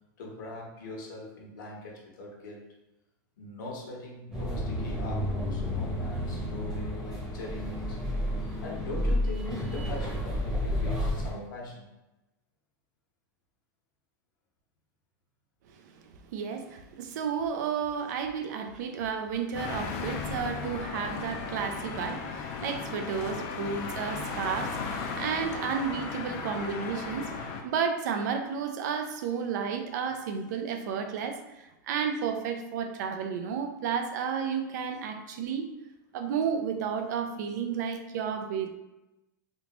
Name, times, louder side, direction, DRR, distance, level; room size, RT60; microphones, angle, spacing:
voice 1, 0.2-2.7 3.4-8.0 8.6-11.9 26.3-26.4, left 2 dB, 80° left, -2 dB, 1.1 m, -41 dB
sound 1, 4.3-11.3, left 1 dB, 5° right, 0.9 m, -31 dB
voice 2, 15.7-35.7 36.1-38.7, right 6 dB, 65° right, 6 dB, 0.4 m, -32 dB
sound 2, 19.5-27.6, left 4 dB, 40° left, 0.4 m, -36 dB
3.5 x 2.5 x 2.9 m, 1.0 s
supercardioid pair, 160°, 10 cm